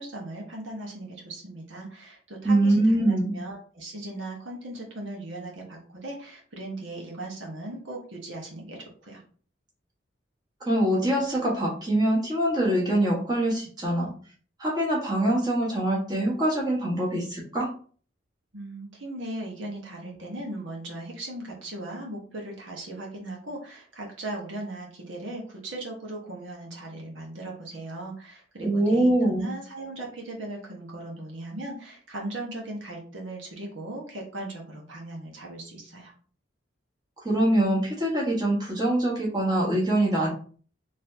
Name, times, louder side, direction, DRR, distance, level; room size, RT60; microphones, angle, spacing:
voice 1, 0.0-9.2 18.5-36.1, right 1 dB, 85° right, -1 dB, 1.4 m, -38 dB
voice 2, 2.4-3.3 10.7-14.1 14.6-17.7 28.6-29.5 37.2-40.3, right 1 dB, 20° right, -3 dB, 1.3 m, -24 dB
4.4 x 3.2 x 2.7 m, 0.43 s
head